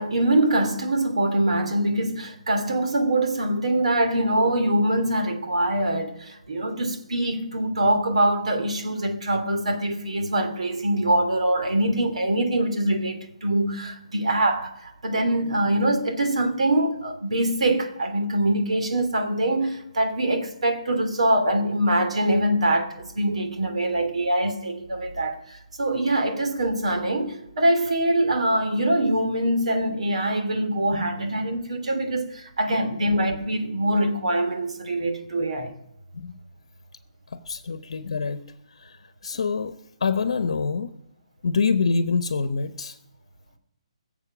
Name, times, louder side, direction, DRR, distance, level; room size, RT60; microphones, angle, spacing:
voice 1, 0.0-35.7, right 1 dB, 75° right, 3.1 m, -24 dB
voice 2, 32.7-33.1 36.1-36.4 37.3-38.4 38.8-39.0 39.2-39.7 40.0-40.9 41.4-43.0, left 5 dB, 60° left, 0.9 m, -26 dB
21.0 x 7.5 x 6.2 m
hypercardioid pair, 175°, 3 cm